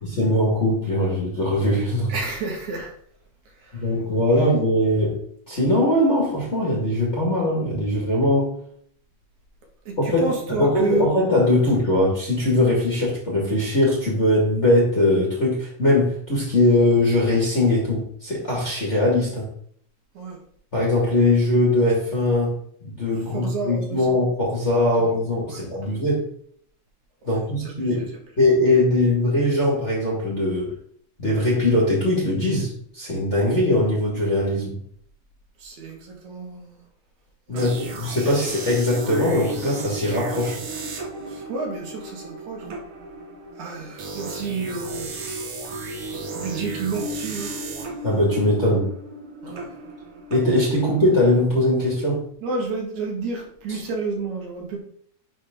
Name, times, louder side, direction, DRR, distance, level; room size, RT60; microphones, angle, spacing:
voice 1, 0.0-2.1 3.7-5.2 5.5-8.5 10.0-19.5 20.7-26.3 27.2-28.0 28.4-30.7 31.2-34.8 37.5-40.6 48.0-48.9 50.3-52.2, left 1 dB, 30° left, -5 dB, 1.6 m, -21 dB
voice 2, 2.1-2.9 3.6-3.9 4.3-4.4 9.9-11.1 20.1-20.4 23.3-24.2 25.0-25.2 25.5-25.7 27.3-28.1 35.6-36.8 37.5-37.7 41.3-42.8 43.5-45.2 46.3-47.5 49.4-49.7 52.4-54.8, right 4 dB, 75° right, 0 dB, 2.8 m, -30 dB
sound 1, 37.6-51.3, right 2 dB, 55° right, 1.7 m, -34 dB
10.0 x 3.4 x 3.6 m, 0.63 s
omnidirectional pair, 3.4 m